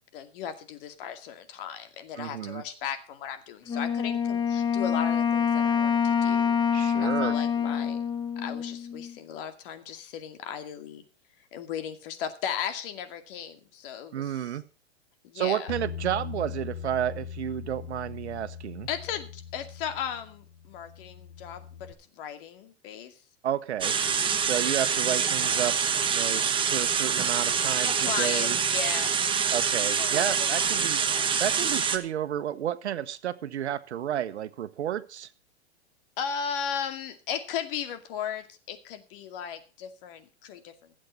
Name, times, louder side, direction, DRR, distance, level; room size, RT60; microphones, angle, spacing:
voice 1, 0.1-8.0 8.4-11.0 11.5-14.6 15.2-15.7 18.9-23.1 27.8-29.2 30.0-31.4 36.2-41.0, left 8 dB, 55° left, 7 dB, 2.3 m, -36 dB
voice 2, 2.2-2.6 6.7-7.3 14.1-14.6 15.3-18.9 23.4-24.0 24.4-25.7 26.1-28.6 29.5-31.0 31.4-35.3, right 10 dB, 85° right, 13 dB, 1.2 m, -31 dB
Wind instrument woodwind instrument, 3.7-9.1, left 7 dB, 15° left, 0.9 m, -26 dB
Bass guitar, 15.7-21.9, left 8 dB, 70° left, 4.4 m, -40 dB
sound 1, 23.8-32.0, right 6 dB, 15° right, 1.2 m, -26 dB
16.5 x 7.7 x 5.4 m, 0.35 s
hypercardioid pair, 135°, 33 cm